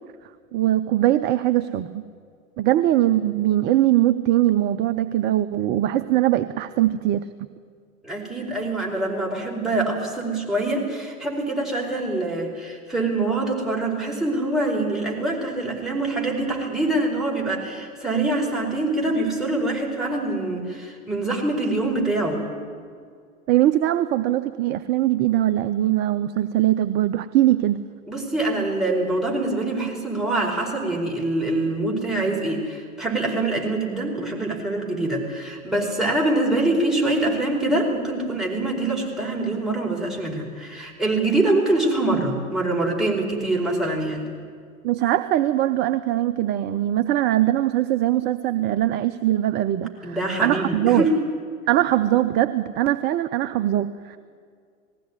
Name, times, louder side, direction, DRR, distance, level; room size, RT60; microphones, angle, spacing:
voice 1, 0.5-2.0 2.6-7.3 23.5-27.8 44.8-51.1 51.7-54.2, right 13 dB, 25° right, 11 dB, 0.6 m, -21 dB
voice 2, 8.0-22.4 28.1-44.3 50.0-51.2, right 2 dB, ahead, -3 dB, 4.8 m, -24 dB
19.5 x 16.5 x 9.7 m, 2.1 s
figure-of-eight pair, 100°, 42 cm